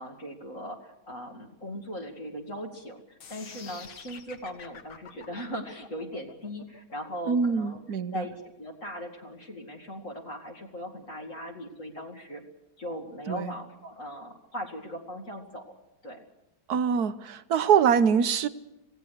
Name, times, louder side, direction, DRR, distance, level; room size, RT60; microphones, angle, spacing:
voice 1, 0.0-7.8 8.1-12.4 12.8-15.7 16.0-16.2, equal, 40° left, 1 dB, 2.7 m, -39 dB
sound 1, 3.2-9.2, left 6 dB, 75° left, 2.5 m, -48 dB
voice 2, 7.3-8.2 13.3-13.5 16.7-18.5, right 7 dB, 60° right, 12 dB, 1.3 m, -24 dB
26.5 x 17.5 x 6.6 m, 0.90 s
omnidirectional pair, 2.1 m